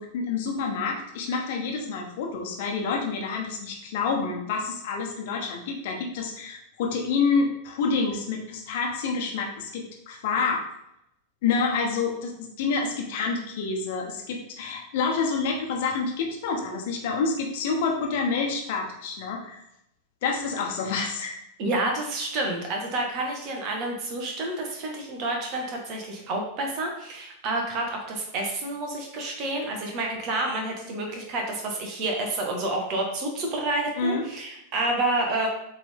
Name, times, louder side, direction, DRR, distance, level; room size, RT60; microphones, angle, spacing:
voice 1, 0.0-10.6 11.4-12.3 12.6-19.6 20.2-21.4 34.0-34.2, left 4 dB, 50° left, 1 dB, 1.2 m, -28 dB
voice 2, 21.6-35.5, right 2 dB, 40° right, 1 dB, 1.6 m, -29 dB
7.7 x 3.7 x 3.7 m, 0.80 s
figure-of-eight pair, 90°, 0 cm